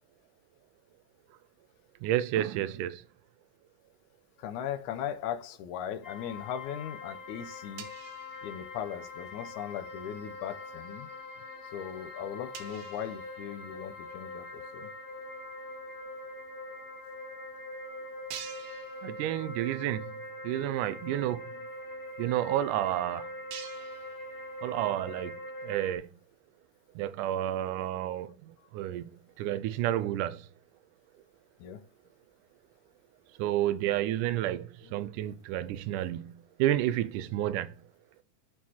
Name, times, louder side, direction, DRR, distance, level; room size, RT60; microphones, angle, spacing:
voice 1, 2.0-3.0 19.0-20.1 20.4-21.5 22.2-23.3 24.6-26.1 27.0-29.1 29.4-30.5 33.4-36.3 36.6-37.7, right 13 dB, 90° right, 2.1 m, -30 dB
voice 2, 4.4-7.9 8.4-11.1 11.7-14.9 31.6-31.8, left 9 dB, 80° left, 2.1 m, -38 dB
sound 1, 6.0-26.0, left 1 dB, 55° left, 0.6 m, -43 dB
sound 2, 7.8-9.2 9.5-9.8 10.3-10.6 11.1-11.2 11.6-11.7 11.9-12.0 12.5-14.2 14.8-14.9 16.0-16.1 16.3-16.4 17.1-17.2 17.6-17.7 18.2-19.7 20.1-20.2 20.7-20.8 21.0-24.8, right 8 dB, 65° right, 1.7 m, -49 dB
11.5 x 4.3 x 2.9 m
omnidirectional pair, 3.5 m